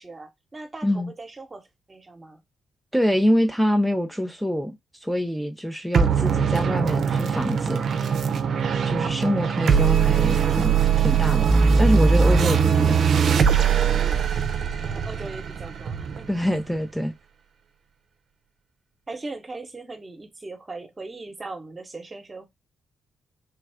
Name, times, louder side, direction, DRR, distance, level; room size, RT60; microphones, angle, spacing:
voice 1, 0.0-2.4 14.8-16.3 19.1-22.5, right 3 dB, 35° right, 1.0 m, -39 dB
voice 2, 2.9-4.8 5.0-7.8 8.8-10.7 11.0-13.0 16.3-17.1, equal, ahead, 0.6 m, -25 dB
sound 1, 5.9-16.7, right 6 dB, 70° right, 0.5 m, -21 dB
3.4 x 2.3 x 3.5 m
supercardioid pair, 50°, 0 cm